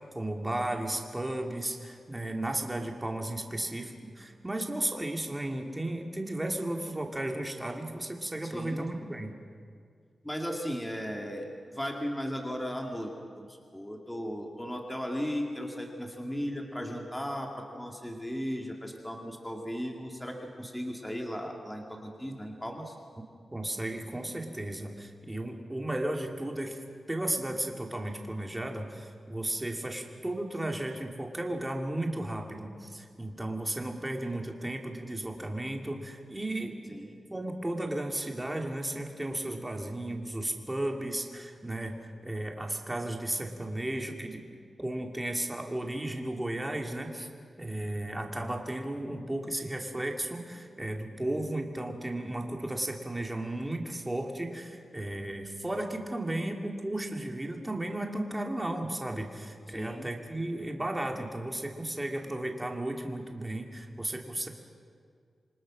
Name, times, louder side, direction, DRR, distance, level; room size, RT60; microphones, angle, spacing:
voice 1, 0.0-9.4 23.5-26.8 27.1-37.0 37.3-44.4 44.8-47.3 47.6-64.5, right 1 dB, 10° right, 2 dB, 2.6 m, -34 dB
voice 2, 8.5-8.9 10.2-11.5 11.7-22.9 36.9-37.2 59.7-60.1, equal, 10° left, 1 dB, 2.5 m, -36 dB
27.5 x 25.0 x 6.4 m, 2.2 s
wide cardioid pair, 140°, 0 cm